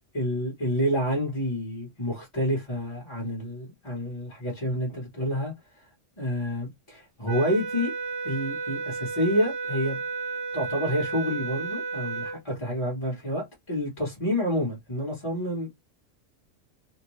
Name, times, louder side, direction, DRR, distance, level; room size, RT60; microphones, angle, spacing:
voice 1, 0.1-5.5 6.2-7.9 8.2-10.0 10.5-15.7, equal, 25° left, 1.1 m, -28 dB
sound 1, 7.3-12.4, right 4 dB, 65° right, 0.9 m, -33 dB
2.7 x 2.1 x 3.0 m
omnidirectional pair, 1.3 m